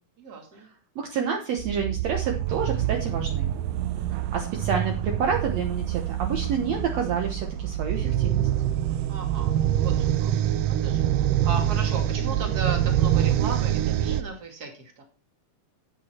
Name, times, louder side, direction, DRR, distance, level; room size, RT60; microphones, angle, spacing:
voice 1, 0.2-0.7 4.0-4.2 9.1-15.0, right 4 dB, 30° right, 3 dB, 2.6 m, -36 dB
voice 2, 1.0-3.5 4.3-8.5, right 6 dB, 60° right, 2 dB, 2.3 m, -28 dB
sound 1, 1.6-14.2, right 11 dB, 85° right, 2.4 m, -25 dB
11.0 x 8.7 x 4.5 m, 0.35 s
omnidirectional pair, 3.7 m